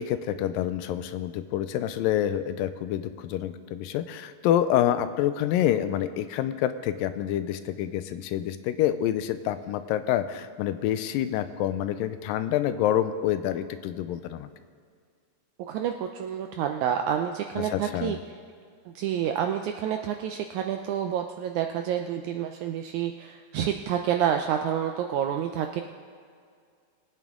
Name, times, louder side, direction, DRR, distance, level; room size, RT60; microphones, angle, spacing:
voice 1, 0.0-14.5 17.6-18.2, left 11 dB, 90° left, 11 dB, 2.3 m, -27 dB
voice 2, 15.7-18.2 19.0-25.8, right 9 dB, 80° right, 5 dB, 1.7 m, -28 dB
22.0 x 9.1 x 3.6 m, 2.2 s
omnidirectional pair, 4.0 m